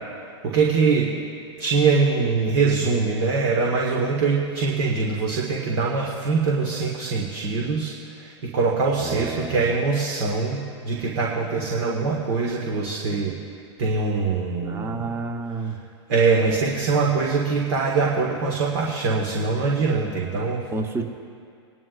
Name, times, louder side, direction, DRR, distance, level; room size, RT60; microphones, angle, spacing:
voice 1, 0.4-1.1 1.6-13.4 13.8-15.1 16.1-20.7, right 4 dB, 60° right, -2 dB, 1.7 m, -23 dB
voice 2, 9.0-9.7 14.6-15.8 20.7-21.1, right 3 dB, 15° right, 5 dB, 1.1 m, -30 dB
21.5 x 11.0 x 2.5 m, 2.3 s
hypercardioid pair, 110°, 15 cm